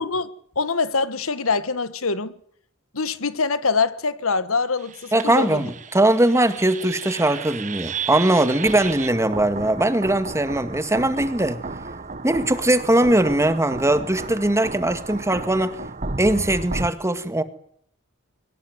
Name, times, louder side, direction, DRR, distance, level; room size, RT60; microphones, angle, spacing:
voice 1, 0.0-2.3 2.9-5.6, left 4 dB, 85° left, 1.6 m, -24 dB
sound 1, 4.8-16.9, right 4 dB, 40° right, 1.4 m, -33 dB
voice 2, 5.1-11.6 12.2-15.8 16.2-17.4, right 1 dB, 15° right, 1.9 m, -20 dB
23.0 x 20.0 x 9.7 m
head